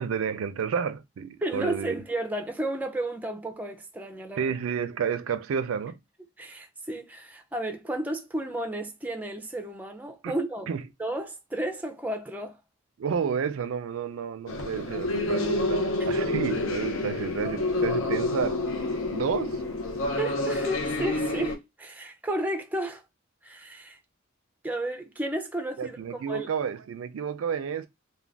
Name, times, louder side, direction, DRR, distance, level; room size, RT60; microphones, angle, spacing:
voice 1, 0.0-2.0 4.4-6.0 10.2-10.4 10.7-10.8 13.0-18.6 19.1-19.6 25.8-27.9, right 6 dB, 80° right, 0.4 m, -30 dB
voice 2, 1.4-4.5 6.4-10.7 11.0-12.6 20.2-23.0 23.4-24.0 24.6-26.5, right 1 dB, 10° right, 0.4 m, -32 dB
sound 1, 14.5-21.6, left 2 dB, 80° left, 0.6 m, -28 dB
2.4 x 2.2 x 3.3 m
head